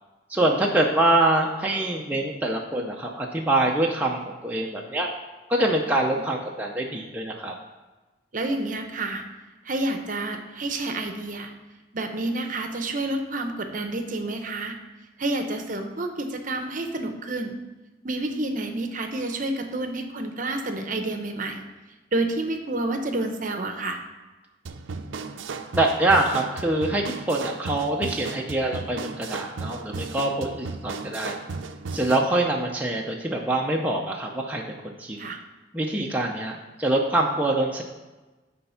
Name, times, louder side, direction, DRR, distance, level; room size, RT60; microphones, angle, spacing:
voice 1, 0.3-5.1 5.5-7.5 25.7-31.4 31.9-35.2 35.7-37.8, right 2 dB, 10° right, -1 dB, 0.5 m, -24 dB
voice 2, 5.9-6.2 8.3-9.2 9.6-11.5 11.9-14.8 15.2-17.6 18.0-21.6 22.1-24.0 35.2-35.4, right 2 dB, 45° right, 6 dB, 0.7 m, -29 dB
sound 1, 24.7-32.3, right 4 dB, 85° right, 0.5 m, -35 dB
9.7 x 3.4 x 5.6 m, 1.2 s
head